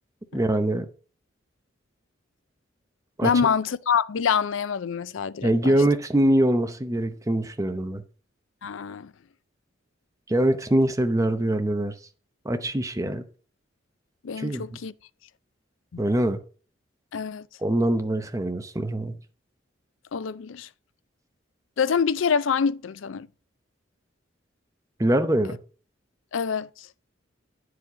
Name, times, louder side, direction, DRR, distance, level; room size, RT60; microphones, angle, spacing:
voice 1, 0.3-0.9 3.2-3.3 5.4-8.0 10.3-11.9 12.4-13.2 14.4-14.8 16.0-16.4 17.6-19.2 25.0-25.6, right 1 dB, 15° right, 0.8 m, -23 dB
voice 2, 3.2-5.7 8.6-9.1 14.2-14.9 15.9-16.0 17.1-17.5 20.1-20.7 21.8-23.3 26.3-26.9, left 6 dB, 80° left, 0.5 m, -26 dB
9.9 x 4.9 x 5.0 m
head